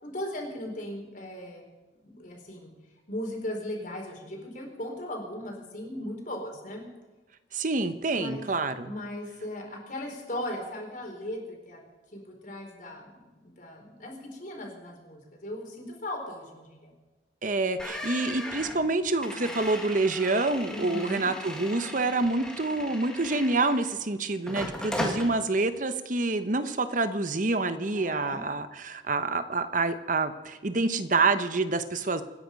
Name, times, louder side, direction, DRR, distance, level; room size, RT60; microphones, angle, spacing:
voice 1, 0.0-1.6 2.0-2.7 3.1-6.8 8.1-11.8 12.1-17.0 20.7-21.3 27.9-28.4, left 1 dB, 45° left, 0 dB, 4.4 m, -38 dB
voice 2, 7.5-8.9 17.4-32.2, right 3 dB, 45° right, 10 dB, 1.0 m, -27 dB
sound 1, 17.8-24.0 24.5-25.3, left 1 dB, 5° left, 2.0 m, -37 dB
26.0 x 10.5 x 5.3 m, 1.2 s
head